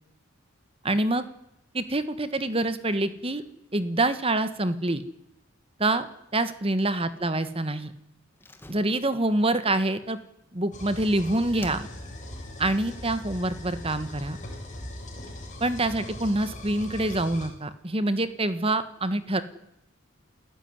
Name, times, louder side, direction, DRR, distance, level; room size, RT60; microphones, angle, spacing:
voice 1, 0.8-1.2 1.7-3.4 3.7-5.0 5.8-6.1 6.3-7.9 8.7-10.2 10.5-11.9 12.6-14.4 15.6-19.4, right 2 dB, 25° right, 12 dB, 1.4 m, -26 dB
Slam, 8.4-11.1 11.6-12.3 12.6-12.7, left 1 dB, 10° left, 1.8 m, -48 dB
sound 1, 10.7-17.5, left 1 dB, 35° left, 7.1 m, -40 dB
29.0 x 15.5 x 9.7 m, 0.85 s
head